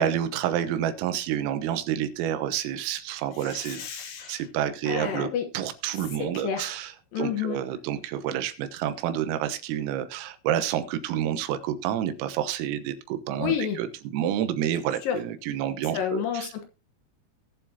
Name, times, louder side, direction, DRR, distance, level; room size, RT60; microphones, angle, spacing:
voice 1, 0.0-3.8 4.3-16.5, right 10 dB, 90° right, 10 dB, 3.8 m, -29 dB
voice 2, 3.4-4.4 4.9-5.5 6.2-6.7 7.1-7.6 13.4-13.8 15.0-15.2 15.9-16.6, left 8 dB, 75° left, 5 dB, 2.0 m, -30 dB
19.5 x 7.4 x 2.8 m, 0.29 s
omnidirectional pair, 5.8 m